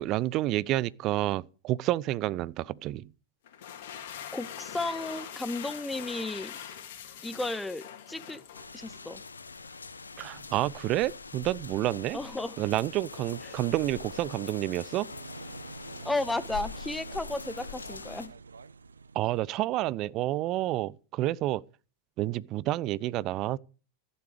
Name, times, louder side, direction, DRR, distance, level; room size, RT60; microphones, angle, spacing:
voice 1, 0.0-3.1 10.2-12.2 12.6-15.1 19.1-21.6 22.2-23.6, right 16 dB, 35° right, 0.6 m, -29 dB
sound 1, 3.4-9.0, left 9 dB, 55° left, 3.0 m, -43 dB
voice 2, 4.3-6.6 7.2-8.4 8.7-9.2 12.1-12.6 13.4-13.5 16.0-18.3, left 2 dB, 5° left, 1.0 m, -34 dB
sound 2, 8.5-18.3, left 4 dB, 75° left, 1.3 m, -43 dB
sound 3, 15.1-19.7, right 5 dB, 75° right, 0.7 m, -47 dB
14.5 x 11.5 x 5.0 m
figure-of-eight pair, 90°, 0 cm